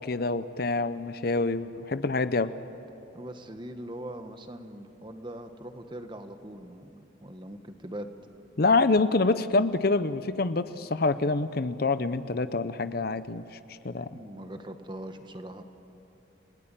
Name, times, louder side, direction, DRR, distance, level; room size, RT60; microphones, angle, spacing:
voice 1, 0.0-2.5 8.6-13.6 13.8-14.1, left 3 dB, 50° left, 13 dB, 0.7 m, -26 dB
voice 2, 3.1-8.2 14.1-15.6, right 1 dB, 25° right, 7 dB, 1.3 m, -41 dB
29.5 x 18.0 x 9.0 m, 3.0 s
head